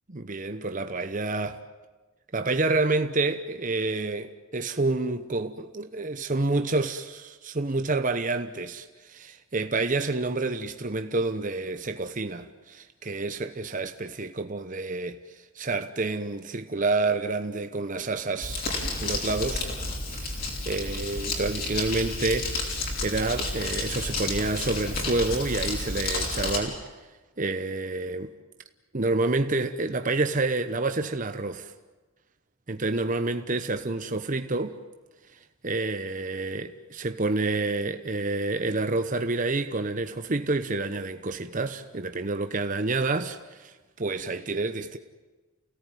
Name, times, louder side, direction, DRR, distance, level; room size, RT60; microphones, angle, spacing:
voice 1, 0.1-1.6 2.3-18.6 19.0-19.7 20.1-26.8 27.4-28.3 28.9-31.7 32.7-34.8 35.3-45.0, right 3 dB, 40° right, 0.9 m, -28 dB
Crumpling crinkling, 18.4-26.6, left 2 dB, 45° left, 5.8 m, -31 dB
29.5 x 17.5 x 9.3 m
head